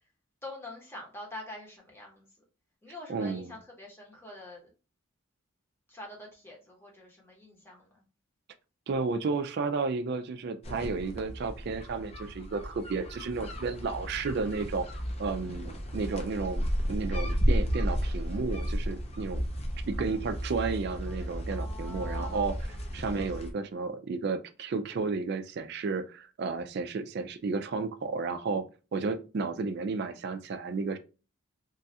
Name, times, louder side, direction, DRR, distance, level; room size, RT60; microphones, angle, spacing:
voice 1, 0.4-2.3 2.8-4.7 5.9-8.0 21.5-22.5, left 1 dB, 10° left, -2 dB, 0.9 m, -45 dB
voice 2, 3.1-3.5 8.9-14.9 15.2-19.4 19.9-22.6 22.9-28.6 28.9-31.0, right 4 dB, 50° right, 10 dB, 0.3 m, -32 dB
sound 1, 10.6-23.5, equal, 30° left, 0.5 m, -33 dB
3.1 x 2.3 x 2.7 m, 0.33 s
head